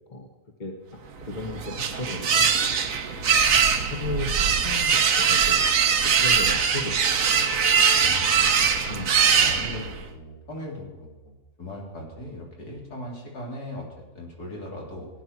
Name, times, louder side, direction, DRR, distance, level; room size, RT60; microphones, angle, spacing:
voice 1, 0.6-1.0 1.3-2.5 3.5-3.6 3.9-5.6 6.0-7.4 8.9-9.2, left 2 dB, 30° left, 3 dB, 1.7 m, -35 dB
sound 1, 1.2-10.1, right 6 dB, 60° right, 1.4 m, -22 dB
voice 2, 8.0-8.7 9.2-15.1, left 1 dB, 75° left, -2 dB, 4.2 m, -39 dB
17.0 x 10.5 x 6.2 m, 1.1 s
omnidirectional pair, 1.7 m